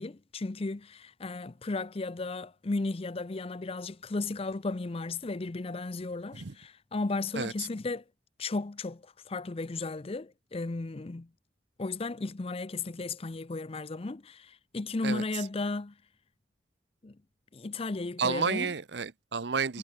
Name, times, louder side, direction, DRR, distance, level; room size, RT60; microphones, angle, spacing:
voice 1, 0.0-8.0 8.4-11.3 11.8-15.9 17.0-17.2 17.5-18.7 19.7-19.8, left 3 dB, 30° left, 0.6 m, -35 dB
voice 2, 7.3-7.7 15.0-15.2 18.2-19.8, right 5 dB, 65° right, 0.8 m, -31 dB
head